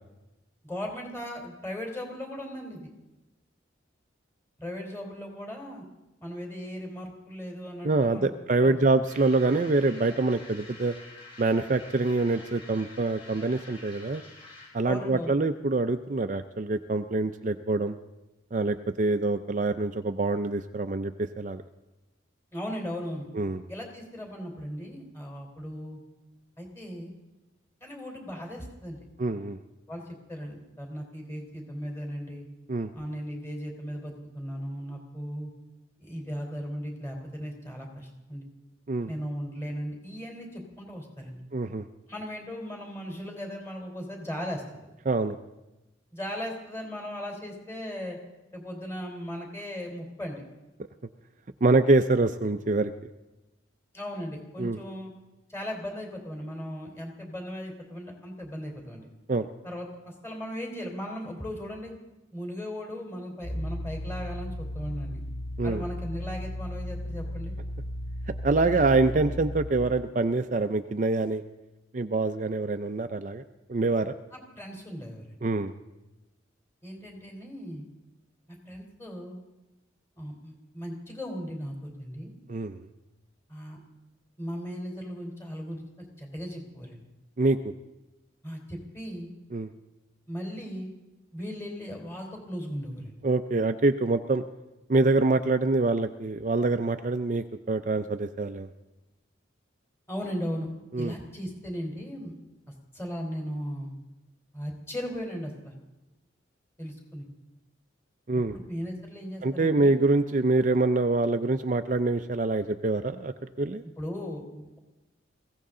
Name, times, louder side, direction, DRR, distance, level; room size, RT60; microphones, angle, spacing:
voice 1, 0.6-2.8 4.6-5.8 6.2-8.3 8.6-8.8 14.8-15.3 22.5-23.3 23.7-26.0 26.6-27.1 27.8-29.0 29.9-32.5 32.9-35.5 36.0-38.4 39.1-41.4 42.1-44.9 46.1-48.2 48.5-50.4 53.9-55.1 55.5-59.1 59.6-59.9 60.2-61.9 62.3-65.2 65.6-67.5 74.3-75.4 76.8-77.9 78.5-79.4 80.2-82.3 83.5-83.8 84.4-85.8 86.2-87.0 88.4-89.3 90.3-90.9 91.3-93.2 100.1-100.7 101.0-102.3 102.9-103.9 104.5-105.7 106.8-107.3 108.3-110.0 114.0-114.8, equal, 15° left, 0 dB, 3.7 m, -37 dB
voice 2, 7.8-11.0 11.4-14.2 14.7-18.0 18.5-21.6 23.3-23.6 29.2-29.6 32.7-32.9 38.9-39.1 41.5-41.8 45.1-45.4 51.6-52.9 54.6-54.8 59.3-59.5 65.6-65.8 68.4-71.4 71.9-73.4 73.7-74.1 75.4-75.7 82.5-82.9 87.4-87.7 89.5-89.7 93.2-94.4 94.9-98.7 100.9-101.1 108.3-108.6 109.4-113.8, right 3 dB, 40° right, 8 dB, 0.5 m, -25 dB
sound 1, 9.0-14.8, left 2 dB, 30° left, 6.3 m, -48 dB
sound 2, 63.4-69.7, left 1 dB, 75° left, 3.9 m, -35 dB
21.5 x 16.5 x 3.8 m, 1.0 s
head